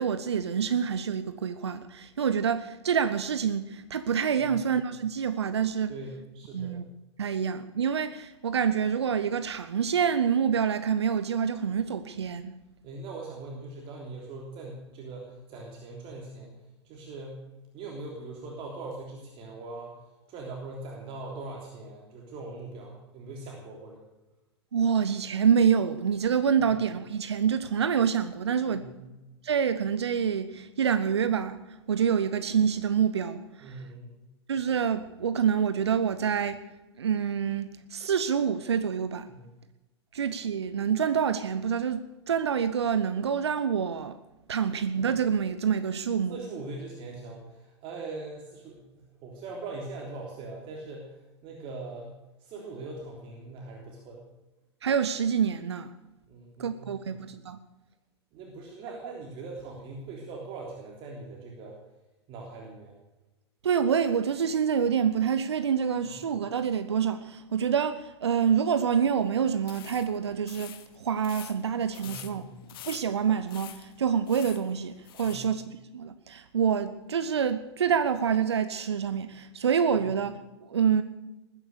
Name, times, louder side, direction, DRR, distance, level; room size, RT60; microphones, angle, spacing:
voice 1, 0.0-5.9 6.5-6.8 7.2-12.5 24.7-28.8 29.4-31.6 31.9-33.7 34.5-36.6 37.0-39.3 40.1-44.2 44.5-46.3 54.8-55.9 56.6-57.6 63.6-72.4 72.8-81.0, right 7 dB, 70° right, 0.9 m, -27 dB
voice 2, 4.4-4.7 5.9-6.8 12.8-16.5 16.8-17.4 17.7-20.0 20.3-24.0 26.6-26.7 28.7-29.2 33.6-34.2 39.3-39.5 46.3-54.3 56.3-57.2 58.3-61.8 62.3-62.9 66.0-66.1 72.0-72.5 75.2-75.5 80.0-80.1, right 3 dB, 35° right, 3.4 m, -41 dB
sound 1, 69.6-75.5, left 12 dB, 55° left, 1.3 m, -47 dB
20.5 x 10.0 x 6.8 m
figure-of-eight pair, 95°, 14 cm